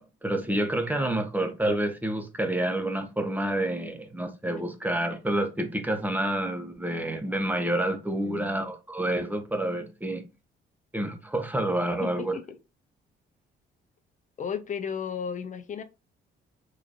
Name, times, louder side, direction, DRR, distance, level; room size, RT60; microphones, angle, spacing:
voice 1, 0.0-10.2 10.9-12.3, right 1 dB, 10° right, 0.9 m, -28 dB
voice 2, 8.2-8.6 12.0-12.6 14.4-15.8, left 7 dB, 40° left, 0.7 m, -34 dB
3.8 x 3.1 x 2.5 m
cardioid pair, 90°, 20 cm